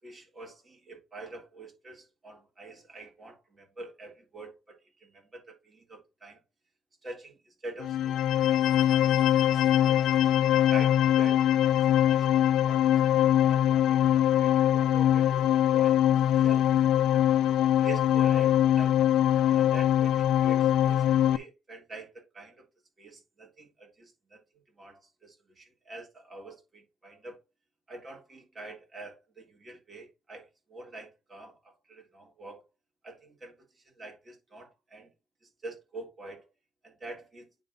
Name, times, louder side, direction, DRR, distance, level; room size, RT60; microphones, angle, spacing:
voice 1, 0.0-6.4 7.0-8.6 9.4-12.3 12.6-12.9 13.1-17.2 17.8-19.0 19.4-22.6 23.0-24.4 24.7-27.4 27.9-32.6 33.0-35.1 35.4-36.5 36.8-37.4, right 2 dB, 30° right, 3.5 m, -46 dB
sound 1, 7.8-21.4, left 11 dB, 80° left, 0.5 m, -23 dB
9.4 x 3.9 x 4.1 m
cardioid pair, 90°, 0 cm